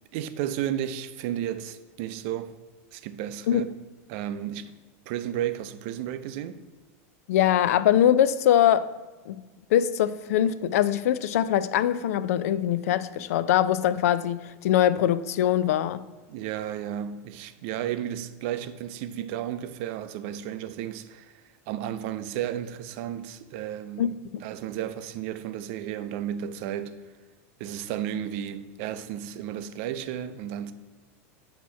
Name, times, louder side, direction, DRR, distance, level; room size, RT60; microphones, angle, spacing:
voice 1, 0.1-2.6 2.9-3.7 4.1-4.8 5.1-6.6 16.3-24.1 24.4-27.0 27.6-30.7, right 10 dB, 55° right, 0.5 m, -33 dB
voice 2, 7.3-8.9 9.3-9.4 9.7-16.1 24.0-24.1, left 11 dB, 80° left, 0.4 m, -22 dB
8.4 x 2.9 x 5.6 m
supercardioid pair, 140°, 8 cm